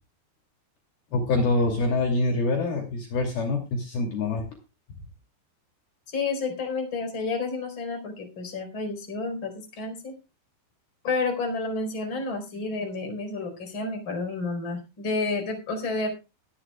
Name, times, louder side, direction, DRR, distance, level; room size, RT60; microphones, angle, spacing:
voice 1, 1.1-4.4, left 2 dB, 60° left, 2 dB, 4.2 m, -25 dB
voice 2, 6.1-10.1 11.0-16.1, left 3 dB, 25° left, 3 dB, 4.6 m, -30 dB
22.5 x 9.9 x 2.3 m, 0.28 s
omnidirectional pair, 5.2 m